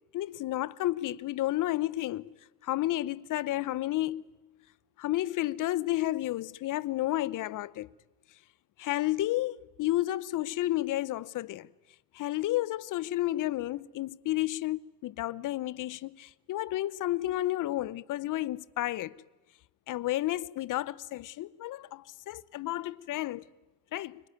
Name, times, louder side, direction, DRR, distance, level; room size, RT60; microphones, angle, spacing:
voice 1, 0.1-2.4 2.6-4.2 5.0-7.9 8.8-11.7 12.1-19.1 19.9-23.4 23.9-24.2, left 15 dB, 45° left, 0.8 m, -31 dB
29.0 x 20.5 x 9.3 m
supercardioid pair, 105°, 44 cm